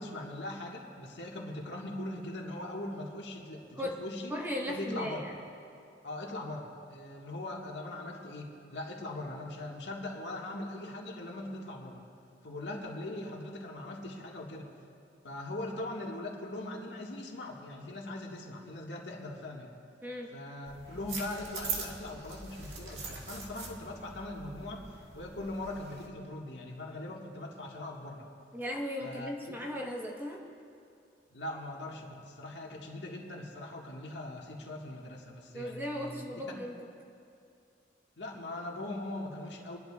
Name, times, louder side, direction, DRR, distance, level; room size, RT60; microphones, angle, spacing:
voice 1, 0.0-4.3 4.7-5.2 6.0-12.0 12.4-14.7 15.2-19.7 20.3-28.3 29.0-29.6 31.3-36.4 38.2-39.8, left 1 dB, 85° left, -1 dB, 1.7 m, -41 dB
voice 2, 4.3-5.4 20.0-20.3 28.5-30.4 35.5-36.8, left 1 dB, 10° right, -2 dB, 1.2 m, -37 dB
sound 1, 20.7-26.1, right 4 dB, 85° right, 1.8 m, -42 dB
28.5 x 11.0 x 2.4 m, 2.5 s
head